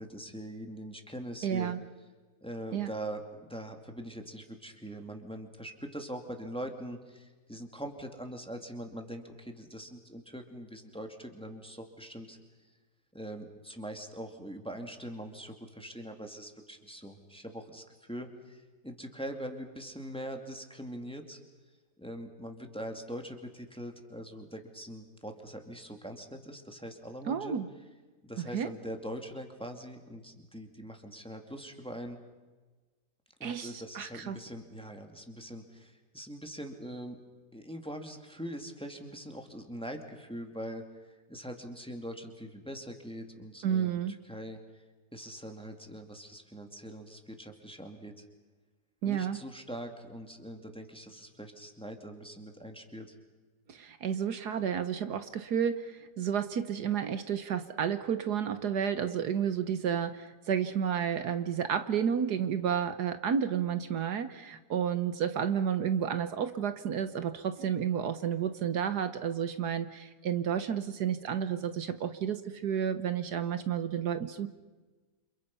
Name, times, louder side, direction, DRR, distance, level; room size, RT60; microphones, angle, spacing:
voice 1, 0.0-1.7 2.4-12.4 13.1-21.4 22.0-27.6 28.2-32.2 33.4-37.2 37.5-44.6 45.1-48.2 49.0-53.1, equal, 5° left, 4 dB, 2.5 m, -42 dB
voice 2, 1.4-1.8 2.7-2.9 27.3-27.7 28.4-28.7 33.4-34.4 43.6-44.1 49.0-49.4 53.7-74.5, right 8 dB, 70° right, 11 dB, 1.6 m, -31 dB
29.5 x 27.5 x 5.6 m, 1.3 s
omnidirectional pair, 1.8 m